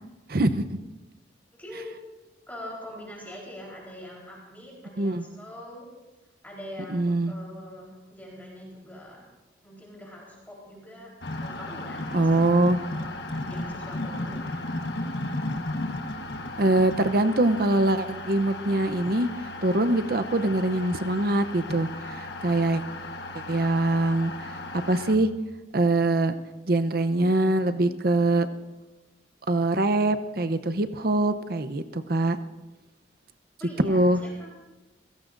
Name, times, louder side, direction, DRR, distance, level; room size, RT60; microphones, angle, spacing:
voice 1, 0.3-0.7 5.0-5.2 6.9-7.3 12.1-12.8 16.6-19.3 19.6-21.9 22.1-22.8 23.5-25.3 25.7-26.3 26.7-28.5 29.5-32.4 33.8-34.2, right 2 dB, 55° right, 10 dB, 0.8 m, -23 dB
voice 2, 1.6-2.0 2.5-5.9 6.4-9.2 9.6-11.1 11.3-12.5 12.8-14.8 33.6-34.5, left 1 dB, 10° left, -4 dB, 4.1 m, -43 dB
sound 1, 11.2-25.2, left 2 dB, 65° left, 1.3 m, -35 dB
28.5 x 17.0 x 2.6 m, 1.1 s
head